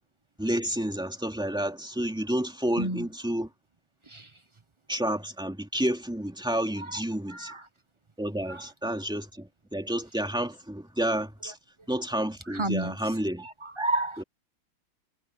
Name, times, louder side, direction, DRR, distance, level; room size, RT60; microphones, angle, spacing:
voice 1, 0.4-3.5 4.9-7.5 8.2-11.6 11.9-13.5 14.2-14.3, right 1 dB, ahead, 2.5 m, -30 dB
voice 2, 7.3-7.6 8.5-8.6 12.5-12.9 13.4-14.2, right 2 dB, 30° right, 0.5 m, -31 dB
omnidirectional pair, 2.1 m